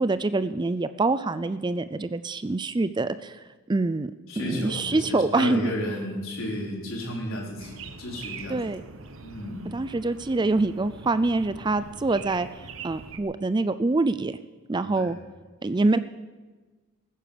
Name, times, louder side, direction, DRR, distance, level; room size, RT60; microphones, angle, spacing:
voice 1, 0.0-3.4 3.7-5.7 8.5-8.8 9.7-14.4 14.7-15.2 15.6-16.0, right 3 dB, 20° right, 13 dB, 0.4 m, -25 dB
voice 2, 4.3-8.6 9.2-9.7 14.8-15.1, left 1 dB, 70° left, -2 dB, 4.5 m, -33 dB
sound 1, 7.6-13.2, right 4 dB, 65° right, 1.0 m, -43 dB
19.5 x 10.0 x 6.8 m, 1.3 s
head